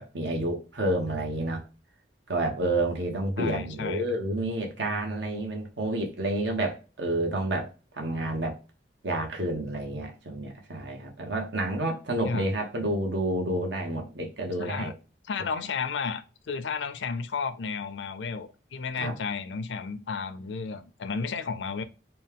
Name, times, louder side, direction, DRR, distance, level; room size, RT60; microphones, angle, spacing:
voice 1, 0.0-1.6 2.3-7.7 7.9-8.6 9.0-14.9 19.0-19.1, right 1 dB, 75° right, 1.2 m, -29 dB
voice 2, 3.4-4.0 12.2-12.6 14.6-14.9 15.3-21.8, left 5 dB, 80° left, 0.5 m, -33 dB
4.1 x 2.3 x 3.5 m
head